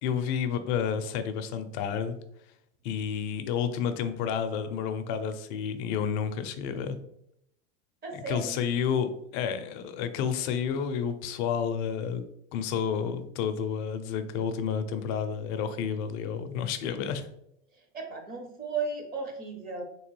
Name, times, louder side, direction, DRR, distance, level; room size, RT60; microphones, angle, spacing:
voice 1, 0.0-2.2 2.8-7.0 8.1-12.2 12.5-17.3, left 7 dB, 45° left, 9 dB, 0.4 m, -30 dB
voice 2, 8.0-8.6 17.9-19.8, right 4 dB, 25° right, 3 dB, 0.7 m, -35 dB
3.6 x 2.9 x 3.0 m, 0.76 s
supercardioid pair, 135°, 34 cm